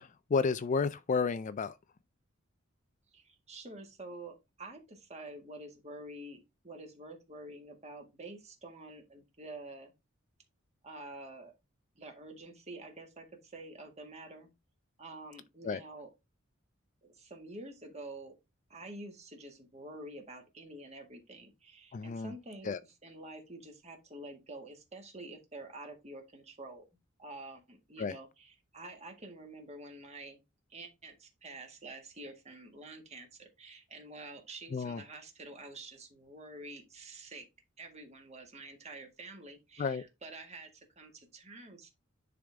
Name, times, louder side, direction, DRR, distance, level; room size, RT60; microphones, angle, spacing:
voice 1, 0.0-1.7 15.6-15.8 21.9-22.3 22.6-22.8 28.0-28.1 34.7-35.0 39.8-40.0, left 5 dB, 35° left, 0.3 m, -31 dB
voice 2, 3.1-9.9 10.8-11.5 12.0-14.5 15.0-16.1 17.0-18.3 18.7-22.8 23.0-26.8 27.2-30.4 30.7-37.5 37.8-41.9, right 2 dB, 35° right, 1.7 m, -48 dB
10.0 x 3.7 x 3.5 m
head